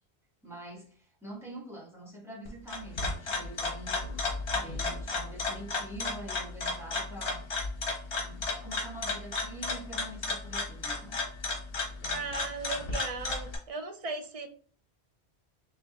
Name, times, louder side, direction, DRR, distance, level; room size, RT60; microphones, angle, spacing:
voice 1, 0.4-4.0 4.5-7.4 8.2-11.2, right 1 dB, ahead, -7 dB, 1.7 m, -45 dB
sound 1, 2.5-13.6, left 3 dB, 65° left, 1.3 m, -33 dB
voice 2, 12.1-14.5, right 4 dB, 45° right, 6 dB, 0.5 m, -37 dB
5.0 x 3.2 x 2.4 m, 0.43 s
omnidirectional pair, 1.1 m